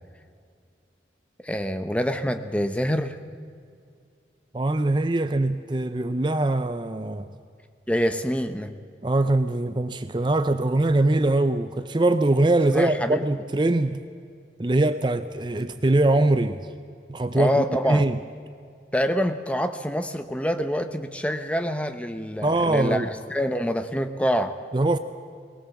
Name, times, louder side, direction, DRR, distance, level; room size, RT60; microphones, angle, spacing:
voice 1, 1.4-3.2 7.9-8.7 12.7-13.2 17.4-18.0 18.9-24.6, equal, 5° left, 8 dB, 0.8 m, -26 dB
voice 2, 4.5-7.3 9.0-14.0 14.6-16.7 17.1-18.2 22.4-23.1 24.7-25.0, right 2 dB, 25° right, 10 dB, 0.5 m, -22 dB
21.5 x 18.5 x 7.1 m, 2.3 s
head